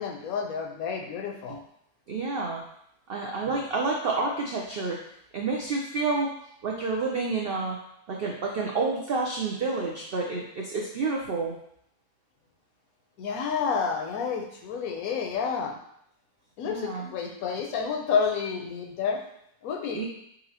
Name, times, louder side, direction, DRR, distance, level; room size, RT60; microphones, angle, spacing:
voice 1, 0.0-1.6 13.2-15.8 16.6-19.2 19.6-20.1, left 6 dB, 75° left, 2 dB, 1.0 m, -29 dB
voice 2, 2.1-2.6 3.1-5.0 5.3-6.4 6.6-7.8 8.1-11.5 16.6-17.0 19.9-20.1, right 3 dB, 75° right, -1 dB, 0.5 m, -29 dB
4.0 x 3.9 x 2.8 m, 0.73 s
omnidirectional pair, 1.6 m